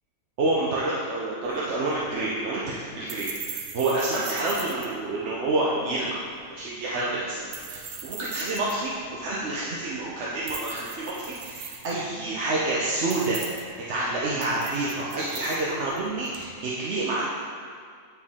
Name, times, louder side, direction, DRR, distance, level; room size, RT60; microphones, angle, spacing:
voice 1, 0.4-6.2 6.5-13.4 13.9-17.2, right 2 dB, 55° right, -6 dB, 1.0 m, -28 dB
sound 1, 1.4-16.5, right 6 dB, 75° right, 1.1 m, -41 dB
9.4 x 4.5 x 3.6 m, 2.1 s
omnidirectional pair, 1.5 m